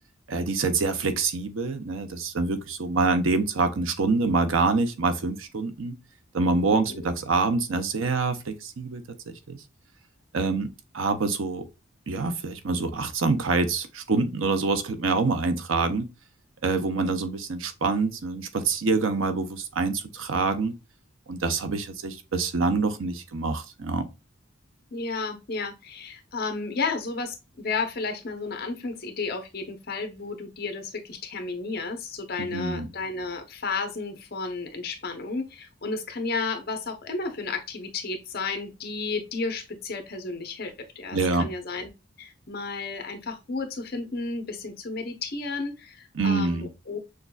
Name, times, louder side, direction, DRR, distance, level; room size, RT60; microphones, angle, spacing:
voice 1, 0.3-5.9 6.3-9.6 10.3-11.7 12.1-16.1 16.6-20.8 21.3-24.1 32.4-32.9 41.1-41.5 46.1-46.7, right 3 dB, 85° right, 0.6 m, -26 dB
voice 2, 6.7-7.1 24.9-41.9 42.2-47.0, left 4 dB, 50° left, 0.9 m, -32 dB
6.4 x 2.3 x 2.3 m
head